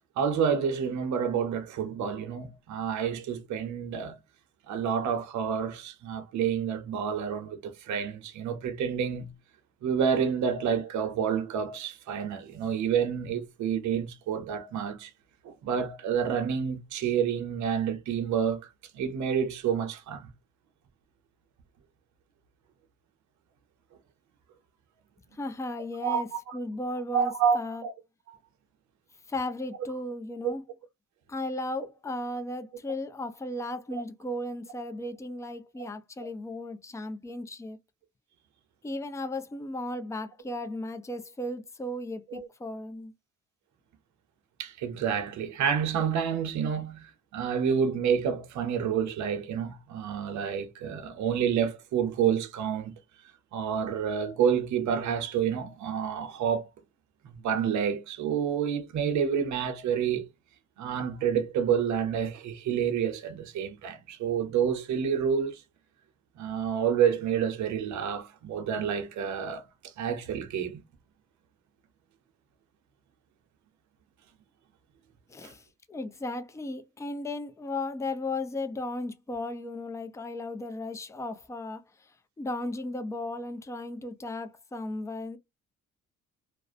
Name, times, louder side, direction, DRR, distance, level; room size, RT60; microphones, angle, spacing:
voice 1, 0.2-4.2 4.7-9.3 9.8-15.1 15.4-18.6 18.9-20.3 26.0-26.6 27.1-27.9 28.3-28.4 30.4-30.5 34.0-34.1 42.3-42.5 44.6-47.1 47.3-52.9 53.5-56.7 57.2-60.3 60.8-65.6 66.4-69.7 70.0-70.8, right 7 dB, 70° right, 0.7 m, -29 dB
voice 2, 25.3-26.3 26.5-27.8 29.3-30.6 31.3-37.8 38.8-43.1 75.3-75.6 75.9-82.1 82.4-85.4, left 1 dB, 10° left, 0.4 m, -35 dB
2.4 x 2.1 x 2.5 m
cardioid pair, 90°, 30 cm